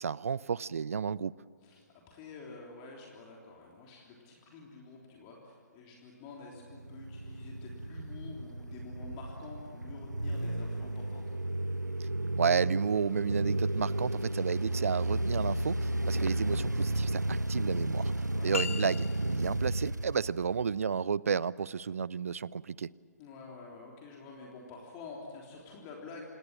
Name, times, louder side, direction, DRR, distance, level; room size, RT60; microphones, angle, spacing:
voice 1, 0.0-1.3 12.0-12.1 12.4-18.1 18.4-19.1 19.3-22.9, right 6 dB, 55° right, 22 dB, 0.6 m, -32 dB
voice 2, 1.6-11.2 18.1-18.5 23.2-26.2, left 3 dB, 25° left, -1 dB, 3.5 m, -48 dB
sound 1, 6.6-20.9, right 1 dB, 90° right, 0.8 m, -33 dB
sound 2, 18.5-19.6, left 6 dB, 50° left, 0.8 m, -37 dB
26.5 x 21.0 x 7.6 m, 2.2 s
figure-of-eight pair, 135°, 9 cm